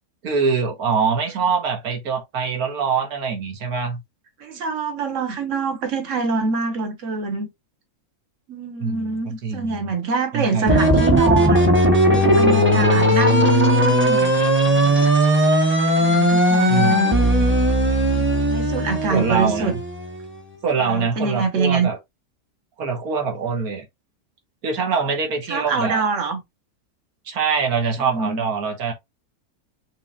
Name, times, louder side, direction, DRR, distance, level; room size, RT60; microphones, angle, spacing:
voice 1, 0.2-4.0 8.8-9.9 10.3-10.8 16.7-17.0 19.1-19.8 20.6-22.0 22.8-23.9 24.6-26.0 27.3-28.9, right 5 dB, 75° right, 1.7 m, -24 dB
voice 2, 4.4-7.5 8.5-11.8 12.1-14.3 14.6-15.1 16.0-17.2 18.1-19.7 20.8-21.9 25.5-26.4 28.0-28.4, right 5 dB, 55° right, 1.5 m, -25 dB
sound 1, 10.7-20.2, equal, 10° right, 0.8 m, -17 dB
6.0 x 3.0 x 2.4 m
omnidirectional pair, 1.6 m